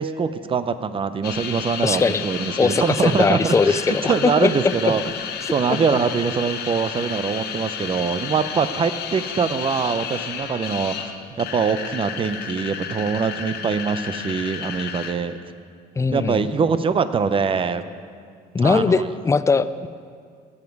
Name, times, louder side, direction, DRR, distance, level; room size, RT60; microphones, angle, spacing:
voice 1, 0.0-5.0 5.5-15.4 16.1-17.8 18.6-19.0, right 5 dB, 30° right, 12 dB, 0.6 m, -23 dB
sound 1, 1.2-15.1, left 8 dB, 70° left, 0.8 m, -32 dB
voice 2, 1.8-2.3 2.6-4.9 5.7-5.8 16.0-16.5 18.5-19.9, left 4 dB, 15° left, 14 dB, 0.4 m, -20 dB
16.5 x 7.4 x 4.7 m, 2.1 s
cardioid pair, 110°, 17 cm